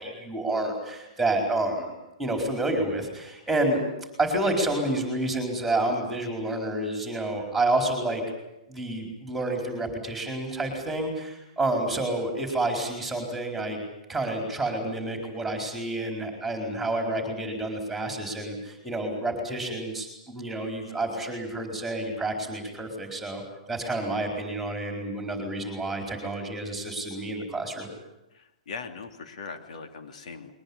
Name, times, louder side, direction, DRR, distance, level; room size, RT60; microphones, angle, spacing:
voice 1, 0.0-1.9 2.2-3.8 4.2-8.2 8.7-13.8 14.1-23.4 23.7-27.9, right 2 dB, ahead, 3 dB, 4.5 m, -29 dB
voice 2, 28.3-30.5, left 4 dB, 70° left, 7 dB, 2.9 m, -40 dB
22.0 x 20.0 x 9.9 m, 0.89 s
hypercardioid pair, 170°, 4 cm